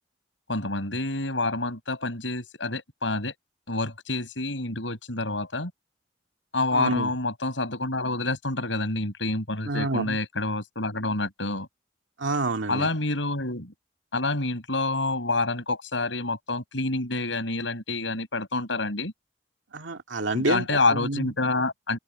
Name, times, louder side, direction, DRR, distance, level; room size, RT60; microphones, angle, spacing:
voice 1, 0.5-3.3 3.7-5.7 6.5-11.7 12.7-13.7 14.1-19.1 20.3-22.0, left 2 dB, 80° left, 6.4 m, -28 dB
voice 2, 6.7-7.1 9.7-10.2 12.2-12.9 19.7-21.3, right 2 dB, 85° right, 2.2 m, -28 dB
head